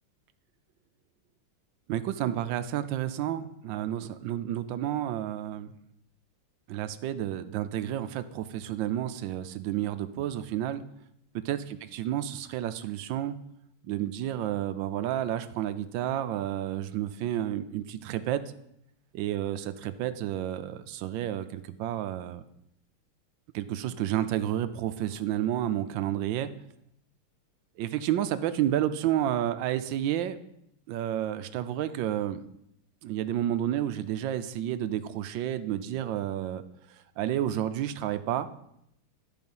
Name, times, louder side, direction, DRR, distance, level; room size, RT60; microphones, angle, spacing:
voice 1, 1.9-5.7 6.7-10.8 11.3-13.4 13.8-18.4 19.1-22.4 23.5-26.5 27.8-30.4 30.9-32.4 33.0-36.6 37.2-38.5, right 11 dB, 75° right, 11 dB, 1.1 m, -30 dB
11.0 x 4.8 x 5.4 m, 0.77 s
omnidirectional pair, 2.4 m